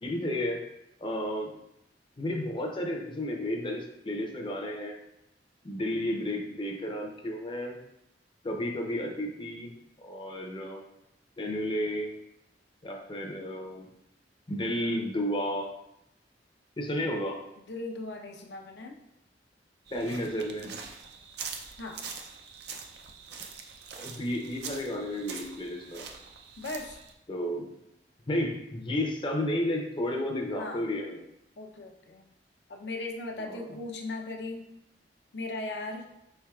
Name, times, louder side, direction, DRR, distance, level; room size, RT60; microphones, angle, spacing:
voice 1, 0.0-0.6 1.0-1.5 2.2-5.0 5.6-7.8 8.4-9.7 10.0-10.8 11.4-12.1 12.8-13.9 14.5-15.7 16.8-17.4 19.9-20.8 24.0-26.1 27.3-27.6 28.3-31.2 33.4-33.6, left 1 dB, 30° left, 1 dB, 0.6 m, -32 dB
voice 2, 17.6-19.0 21.8-22.0 26.6-27.0 30.6-30.9 31.6-32.2 32.7-34.7 35.3-36.1, left 2 dB, 70° left, 2 dB, 0.6 m, -38 dB
sound 1, 19.9-27.1, right 5 dB, 65° right, 0.5 m, -43 dB
4.4 x 4.3 x 2.3 m, 0.81 s
head